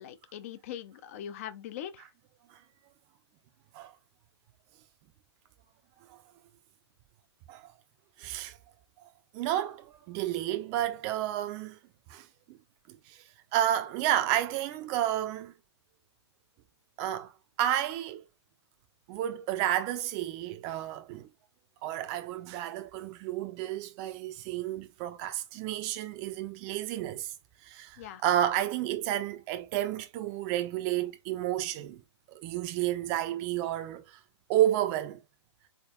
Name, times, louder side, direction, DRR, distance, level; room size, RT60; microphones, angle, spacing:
voice 1, 0.0-2.1 28.0-28.2, left 10 dB, 30° left, 0.5 m, -41 dB
voice 2, 8.2-8.6 9.3-11.8 12.1-12.6 12.9-13.2 13.5-15.5 17.0-17.3 17.6-18.2 19.1-21.3 21.8-27.3 27.6-32.0 32.3-34.2 34.5-35.2, right 12 dB, 20° right, 0.5 m, -31 dB
4.1 x 3.6 x 2.3 m
figure-of-eight pair, 125°, 15 cm